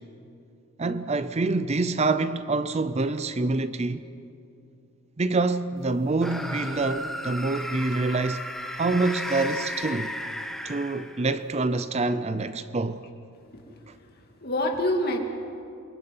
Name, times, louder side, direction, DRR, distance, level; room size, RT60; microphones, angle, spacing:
voice 1, 0.8-4.1 5.2-8.4 8.8-10.2 10.6-13.0, right 3 dB, 30° right, 0.6 m, -26 dB
sound 1, 6.2-11.4, left 1 dB, ahead, 1.2 m, -34 dB
voice 2, 13.5-15.2, left 1 dB, 45° left, 2.6 m, -28 dB
28.0 x 22.5 x 5.5 m
head